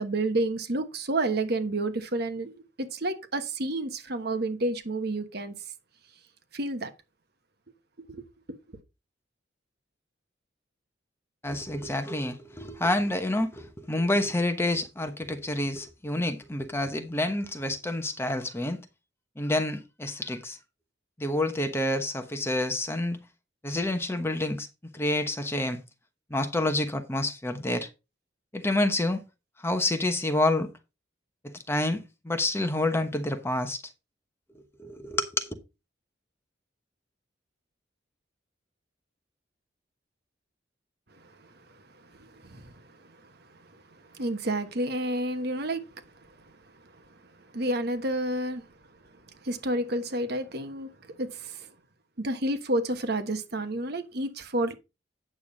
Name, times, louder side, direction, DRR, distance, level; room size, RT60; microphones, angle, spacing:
voice 1, 0.0-5.5 6.5-6.9 8.1-8.6 41.2-41.5 41.9-43.7 44.1-46.3 46.8-48.7 49.4-51.7 52.2-54.7, right 1 dB, 60° right, 1.1 m, -31 dB
voice 2, 11.4-18.8 19.4-20.6 21.2-23.2 23.6-24.7 24.9-25.8 26.3-27.9 28.5-29.2 29.6-30.7 31.4-33.8 34.8-35.5, left 1 dB, 15° left, 1.0 m, -28 dB
8.9 x 6.9 x 4.0 m
head